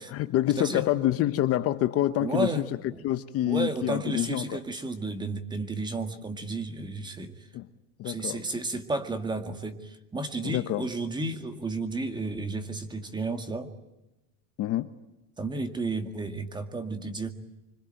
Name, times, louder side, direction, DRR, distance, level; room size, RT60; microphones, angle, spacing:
voice 1, 0.0-2.7 3.0-4.6 7.5-7.7 8.0-8.4 10.4-10.9 14.6-14.9, left 13 dB, 40° left, 11 dB, 1.0 m, -27 dB
voice 2, 2.2-3.1 3.5-7.5 8.0-13.7 15.4-17.3, right 2 dB, 10° right, 9 dB, 2.0 m, -32 dB
26.0 x 25.5 x 9.0 m, 1.0 s
cardioid pair, 155°, 38 cm